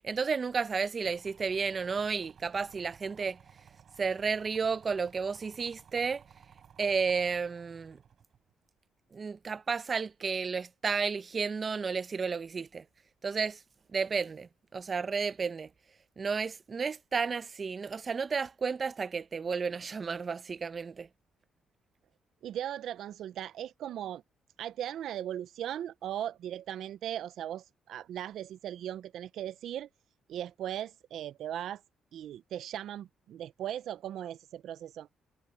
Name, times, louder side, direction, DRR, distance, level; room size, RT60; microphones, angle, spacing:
voice 1, 0.0-3.4 4.0-6.2 6.8-8.0 9.1-12.8 13.2-13.6 13.9-15.7 16.2-21.1, right 5 dB, 40° right, 0.7 m, -32 dB
sound 1, 1.0-8.5, right 8 dB, 55° right, 6.3 m, -58 dB
voice 2, 22.4-24.2 24.6-29.9 30.3-31.8 32.1-35.1, right 11 dB, 75° right, 0.4 m, -38 dB
cardioid pair, 90°, 0 cm